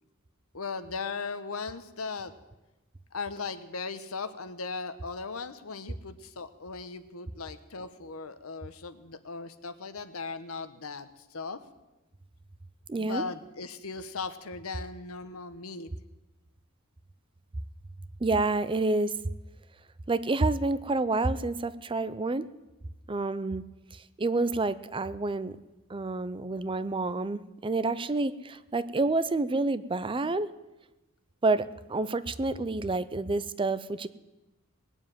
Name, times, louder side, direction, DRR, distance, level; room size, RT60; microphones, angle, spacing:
voice 1, 0.5-2.3 3.1-11.6 13.0-15.9, left 4 dB, 85° left, 11 dB, 1.1 m, -38 dB
voice 2, 12.9-13.2 18.2-19.1 20.1-22.5 23.1-23.6 23.9-25.6 25.9-30.5 31.4-34.1, right 3 dB, 25° right, 15 dB, 0.5 m, -28 dB
20.0 x 7.2 x 9.1 m, 1.0 s
head